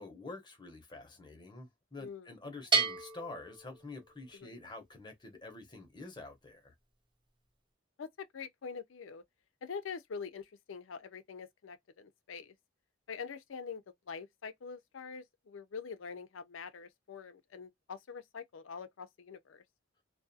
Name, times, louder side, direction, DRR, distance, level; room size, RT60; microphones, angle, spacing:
voice 1, 0.0-6.7, left 2 dB, 25° left, 0.8 m, -47 dB
Bell, 2.7-4.4, right 4 dB, 25° right, 0.7 m, -33 dB
voice 2, 8.0-9.2 9.6-12.5 13.1-19.6, left 5 dB, 90° left, 0.5 m, -45 dB
2.4 x 2.2 x 2.6 m
head